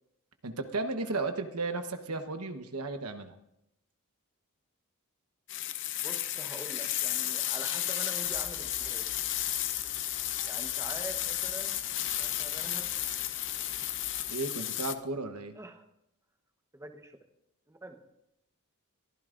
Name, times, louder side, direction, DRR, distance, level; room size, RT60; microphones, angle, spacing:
voice 1, 0.4-3.3 14.3-15.5, right 3 dB, 80° right, 7 dB, 1.1 m, -34 dB
sound 1, 5.5-14.9, left 12 dB, 55° left, 0.7 m, -33 dB
voice 2, 6.0-9.1 10.5-11.8 12.2-12.9 15.5-15.8 16.7-17.2 17.7-18.0, right 2 dB, 15° right, 4 dB, 1.1 m, -45 dB
sound 2, 8.2-14.4, left 2 dB, 85° left, 3.1 m, -52 dB
22.5 x 14.5 x 2.6 m, 0.82 s
head